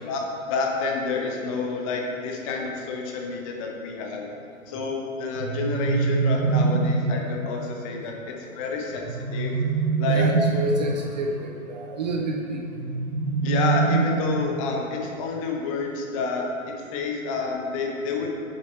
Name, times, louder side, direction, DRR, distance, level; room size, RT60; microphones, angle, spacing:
voice 1, 0.0-4.4 4.7-9.6 10.0-10.3 13.4-18.3, left 4 dB, 25° left, 1 dB, 0.9 m, -29 dB
sound 1, 5.4-7.2 9.0-10.9 12.8-14.7, right 4 dB, 85° right, 0.8 m, -24 dB
voice 2, 10.1-12.6, right 2 dB, 30° right, 1 dB, 0.6 m, -29 dB
7.4 x 7.0 x 4.4 m, 2.4 s
figure-of-eight pair, 120°, 42 cm